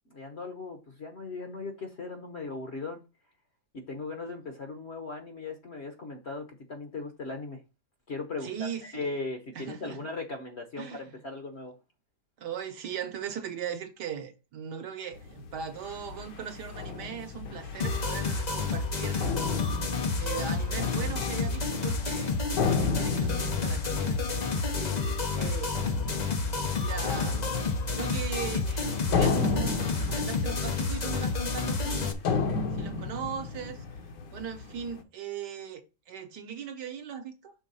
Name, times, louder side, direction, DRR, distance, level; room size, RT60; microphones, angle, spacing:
voice 1, 0.1-3.0 3.7-7.6 8.1-8.5 8.8-11.7 24.7-25.5, left 3 dB, 45° left, 0.9 m, -38 dB
voice 2, 8.4-9.1 9.5-10.0 10.8-11.2 12.4-19.3 20.2-24.5 25.3-25.7 26.1-26.3 26.7-27.4 27.8-32.2 32.8-33.8 34.3-37.5, right 7 dB, 70° right, 1.4 m, -39 dB
sound 1, 15.1-35.0, left 5 dB, 70° left, 1.5 m, -34 dB
sound 2, 17.8-32.1, left 4 dB, 85° left, 0.3 m, -30 dB
6.4 x 3.5 x 5.4 m
omnidirectional pair, 2.0 m